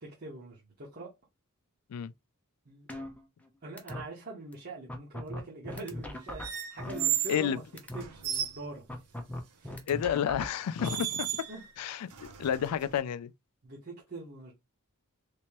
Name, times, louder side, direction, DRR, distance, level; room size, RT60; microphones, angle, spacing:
voice 1, 0.0-1.1 2.7-2.9 3.6-7.6 7.9-9.0 9.6-9.8 11.5-11.6 13.6-14.5, right 2 dB, 45° right, 1.2 m, -43 dB
sound 1, 2.9-3.5 3.8-4.0 4.5-4.6 4.9-7.5 7.8-8.0 8.9-10.9, left 1 dB, 5° left, 0.6 m, -39 dB
sound 2, 6.4-7.4 8.0-8.6 9.9-10.1 10.8-11.7 12.1-13.0, right 10 dB, 85° right, 0.8 m, -34 dB
voice 2, 9.9-11.3 11.8-13.3, left 9 dB, 85° left, 0.3 m, -30 dB
3.3 x 3.0 x 2.9 m
head